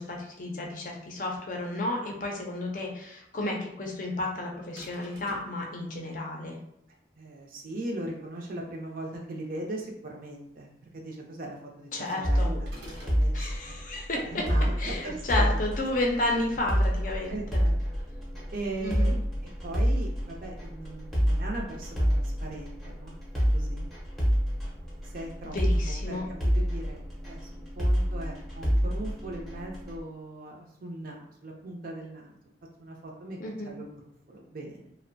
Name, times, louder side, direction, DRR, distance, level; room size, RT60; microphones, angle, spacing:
voice 1, 0.0-6.6 11.9-12.5 13.3-14.4 14.8-17.6 18.8-19.2 25.4-26.2 33.4-33.7, left 2 dB, 45° left, 0 dB, 0.5 m, -32 dB
sound 1, 4.8-5.6 12.7-13.2, equal, 80° right, 0.9 m, -48 dB
voice 2, 7.2-13.8 14.3-15.6 17.3-17.7 18.5-19.1 19.6-23.1 23.5-23.9 25.0-25.6 25.9-32.4 32.8-34.0 34.3-34.9, right 2 dB, 50° right, 0 dB, 0.5 m, -39 dB
sound 2, 12.2-30.0, equal, ahead, 0.6 m, -28 dB
2.5 x 2.0 x 2.5 m, 0.78 s
head